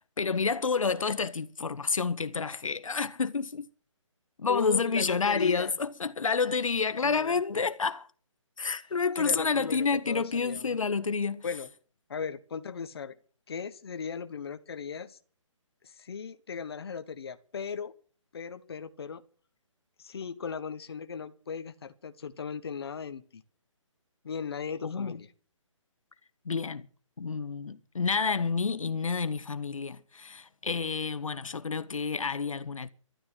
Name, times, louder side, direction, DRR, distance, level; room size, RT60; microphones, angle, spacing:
voice 1, 0.0-3.6 4.4-8.1 8.6-11.4 24.8-25.1 26.4-26.8 27.2-32.9, left 5 dB, 80° left, 1.5 m, -29 dB
voice 2, 4.5-5.7 7.0-7.4 9.2-10.8 11.4-11.7 12.1-13.2 13.5-15.2 15.8-17.9 18.3-19.2 20.0-23.4 24.2-25.3, left 6 dB, 50° left, 1.3 m, -37 dB
13.5 x 12.0 x 7.7 m
hypercardioid pair, 170°, 17 cm